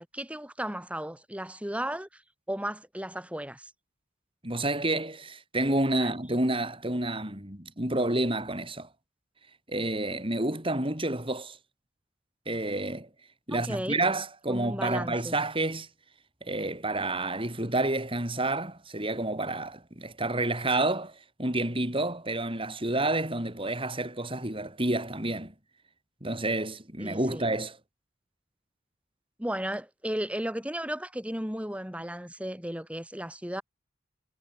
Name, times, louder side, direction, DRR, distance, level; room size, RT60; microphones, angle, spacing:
voice 1, 0.0-2.2 2.5-3.7 6.0-6.1 13.6-14.0 14.5-15.4 27.0-27.5 29.4-33.6, right 1 dB, 5° right, 7.5 m, -35 dB
voice 2, 4.4-8.9 9.7-11.6 12.5-13.1 13.5-15.9 16.4-25.5 26.2-27.8, right 2 dB, 30° right, 7.4 m, -29 dB
head